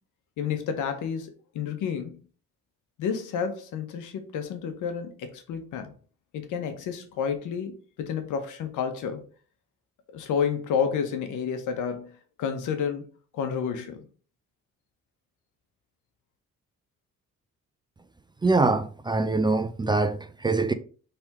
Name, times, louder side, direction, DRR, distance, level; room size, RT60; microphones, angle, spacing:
voice 1, 0.4-2.2 3.0-5.9 6.3-9.2 10.1-13.1 13.3-14.0, left 7 dB, 85° left, 1.0 m, -30 dB
voice 2, 18.4-20.7, right 3 dB, 15° right, 0.4 m, -24 dB
4.3 x 3.4 x 3.5 m
cardioid pair, 90°, 30 cm